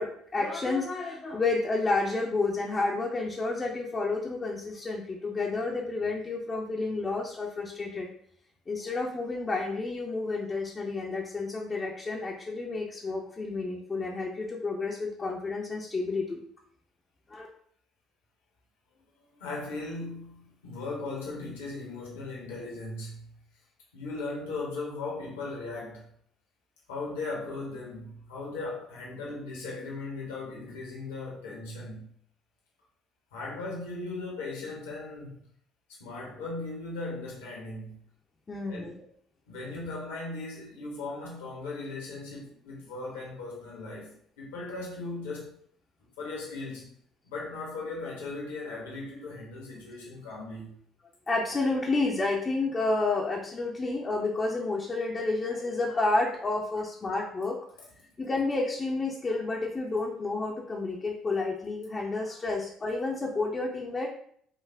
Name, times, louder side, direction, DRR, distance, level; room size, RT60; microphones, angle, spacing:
voice 1, 0.0-8.1 8.7-16.4 17.3-17.5 38.5-39.0 51.3-57.6 58.2-64.1, left 3 dB, 30° left, -2 dB, 0.8 m, -30 dB
voice 2, 18.9-23.3 23.9-26.1 26.9-32.1 33.3-35.4 36.0-38.0 38.7-38.9 39.5-45.5 46.2-46.9 47.2-50.7 57.8-57.9, left 3 dB, 75° left, -3 dB, 1.4 m, -38 dB
5.7 x 2.4 x 3.5 m, 0.62 s
figure-of-eight pair, 55°, 0 cm